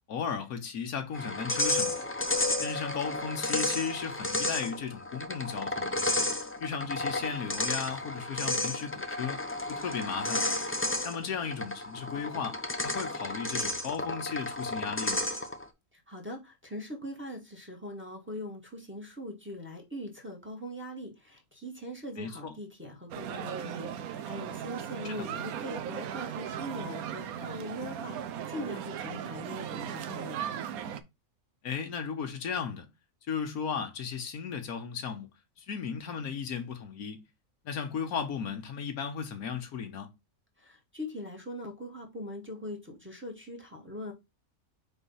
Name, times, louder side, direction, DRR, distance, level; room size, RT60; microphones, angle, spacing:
voice 1, 0.1-2.0 2.6-6.0 6.6-9.4 9.7-10.5 11.0-15.3 22.2-22.5 25.0-25.2 31.6-32.8 33.3-35.3 35.6-37.2 37.6-40.1, left 6 dB, 90° left, 1.5 m, -35 dB
sound 1, 1.1-15.6, left 1 dB, 15° left, 0.4 m, -32 dB
voice 2, 15.9-30.5 40.6-44.1, left 1 dB, 10° right, 1.6 m, -41 dB
sound 2, 23.1-31.0, right 9 dB, 85° right, 1.2 m, -37 dB
4.7 x 3.9 x 5.5 m
omnidirectional pair, 1.5 m